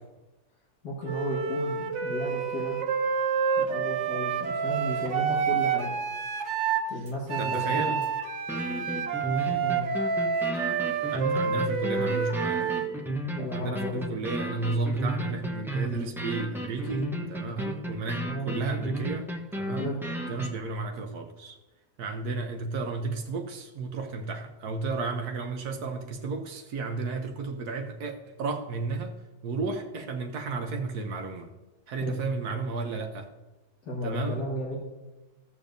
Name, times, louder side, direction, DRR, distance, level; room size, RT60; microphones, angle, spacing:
voice 1, 0.8-2.8 3.6-5.9 6.9-8.0 8.8-8.9 9.6-9.9 13.3-14.1 18.2-18.5 19.8-20.0 32.0-32.2 33.8-34.8, left 1 dB, 80° left, -5 dB, 2.1 m, -34 dB
Wind instrument woodwind instrument, 1.0-6.9 7.3-12.9, right 6 dB, 55° right, 0.9 m, -28 dB
sound 1, 7.1-7.2 7.5-7.6 8.0-8.1 8.5-20.5, right 1 dB, 5° right, 0.5 m, -33 dB
voice 2, 7.4-8.0 11.1-12.8 13.5-19.3 19.5-19.9 20.3-21.6 22.0-29.1 29.4-31.5 31.9-33.3 34.0-34.4, right 3 dB, 80° right, 5 dB, 1.3 m, -33 dB
15.5 x 6.9 x 2.6 m, 1.1 s
omnidirectional pair, 1.7 m